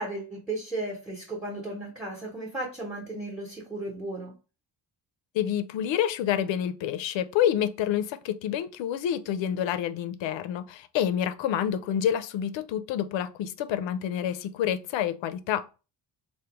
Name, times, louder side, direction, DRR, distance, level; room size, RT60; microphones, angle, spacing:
voice 1, 0.0-4.4, right 2 dB, 5° right, 0.8 m, -35 dB
voice 2, 5.3-15.6, left 10 dB, 80° left, 0.5 m, -28 dB
3.4 x 2.2 x 2.9 m
cardioid pair, 120°, 44 cm